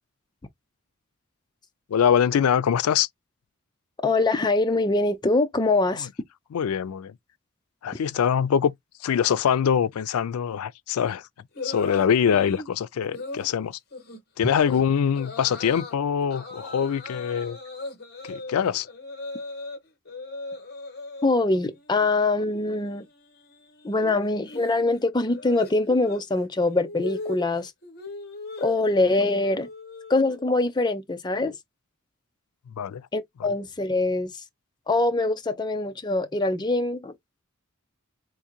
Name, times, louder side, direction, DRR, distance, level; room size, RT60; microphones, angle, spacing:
voice 1, 1.9-3.1 6.5-7.1 7.8-8.7 9.0-11.2 11.6-13.8 14.4-17.6 18.3-18.9 32.8-33.0, left 8 dB, 90° left, 0.4 m, -23 dB
voice 2, 4.0-6.1 21.2-23.0 23.8-27.7 28.6-29.7 30.1-31.6 33.1-34.3 34.9-37.2, left 2 dB, 20° left, 0.5 m, -23 dB
sound 1, 11.6-12.7 13.1-13.5 13.9-14.2 14.5-14.8 15.2-16.0 16.3-19.8 20.1-21.3 21.7-22.1 22.3-30.5, left 3 dB, 45° left, 1.2 m, -39 dB
3.7 x 2.6 x 2.8 m
head